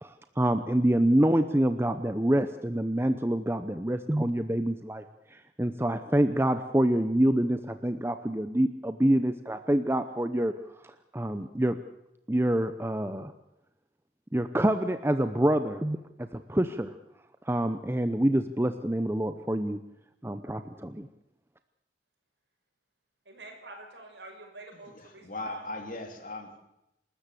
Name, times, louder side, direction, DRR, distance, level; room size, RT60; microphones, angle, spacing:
voice 1, 0.0-5.0 5.3-10.5 10.8-11.8 12.3-13.3 14.3-16.9 17.4-19.8 20.2-21.1, right 1 dB, 15° right, 9 dB, 0.8 m, -26 dB
voice 2, 23.2-25.6, right 2 dB, 80° right, 3 dB, 6.4 m, -46 dB
voice 3, 24.7-26.6, left 2 dB, 50° left, 4 dB, 3.2 m, -39 dB
27.5 x 13.5 x 8.4 m, 0.85 s
head